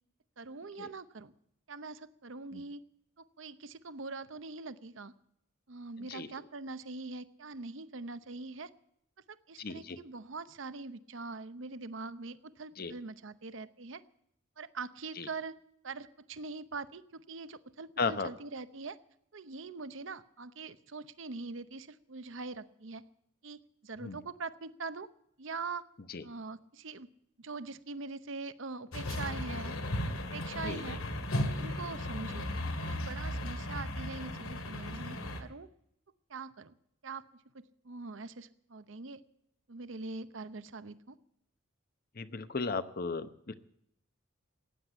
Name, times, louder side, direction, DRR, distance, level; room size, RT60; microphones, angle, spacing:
voice 1, 0.4-1.3 1.7-2.8 3.2-5.1 5.7-8.7 9.3-14.0 14.6-15.6 15.8-19.0 19.3-23.0 23.4-25.1 25.4-25.8 26.2-27.1 27.4-29.8 30.3-31.0 31.5-32.5 32.8-35.7 36.3-36.7 37.0-37.2 37.8-39.2 39.7-41.2, right 3 dB, 65° right, 14 dB, 0.8 m, -43 dB
voice 2, 9.6-10.0 12.8-12.9 15.2-15.3 18.0-18.3 24.0-24.2 26.1-26.2 30.6-31.0 42.2-43.5, left 4 dB, 45° left, 12 dB, 0.8 m, -35 dB
sound 1, 28.9-35.4, left 1 dB, 85° left, 2.2 m, -36 dB
15.5 x 9.9 x 8.9 m, 0.75 s
head